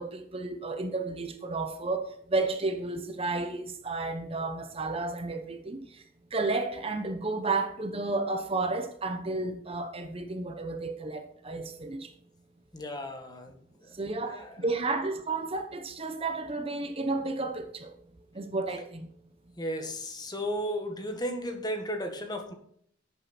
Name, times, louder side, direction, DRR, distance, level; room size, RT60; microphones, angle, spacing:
voice 1, 0.0-6.0 6.3-12.1 13.9-17.9 18.3-19.1, right 3 dB, 30° right, 0.9 m, -32 dB
voice 2, 12.7-13.9 14.2-14.6 19.6-22.5, equal, 20° left, 1.6 m, -35 dB
12.0 x 8.4 x 4.4 m
head